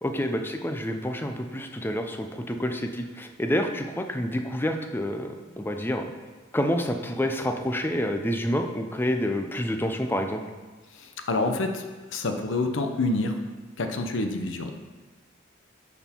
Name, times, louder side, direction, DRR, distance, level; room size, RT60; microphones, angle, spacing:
voice 1, 0.0-6.1 6.5-10.4, equal, 10° left, 5 dB, 0.5 m, -28 dB
voice 2, 10.9-11.8 12.1-13.4 13.8-14.7, left 2 dB, 70° left, 5 dB, 0.7 m, -27 dB
11.0 x 4.4 x 4.4 m, 1.3 s
head